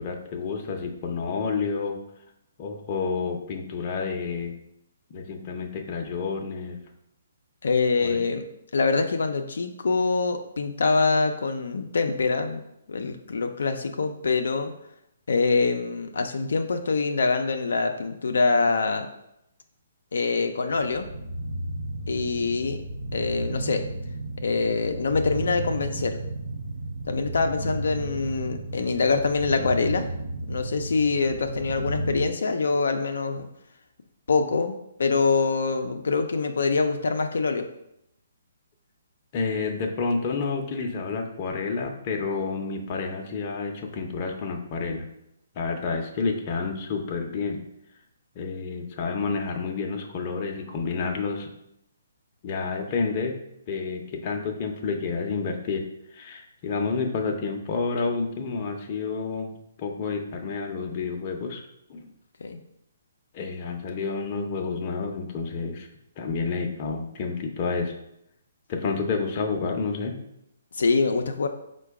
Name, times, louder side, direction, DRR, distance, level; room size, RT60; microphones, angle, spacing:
voice 1, 0.0-2.0 2.6-4.5 5.1-6.8 8.0-8.2 39.3-45.1 45.5-47.6 48.4-51.5 52.4-53.3 53.7-55.8 56.1-61.6 61.9-62.1 63.3-65.9 66.2-67.9 68.7-70.2, left 4 dB, 30° left, 2 dB, 0.6 m, -29 dB
voice 2, 7.6-8.4 8.7-12.6 12.9-14.7 15.3-19.1 20.1-21.1 22.1-22.8 23.1-23.8 24.4-26.2 27.1-30.1 30.5-33.5 34.3-37.7 62.4-62.6 70.7-71.5, left 4 dB, 75° left, 5 dB, 0.4 m, -24 dB
sound 1, 20.7-32.3, right 2 dB, 75° right, 0.6 m, -33 dB
4.7 x 2.2 x 4.6 m, 0.80 s
hypercardioid pair, 160°, 0 cm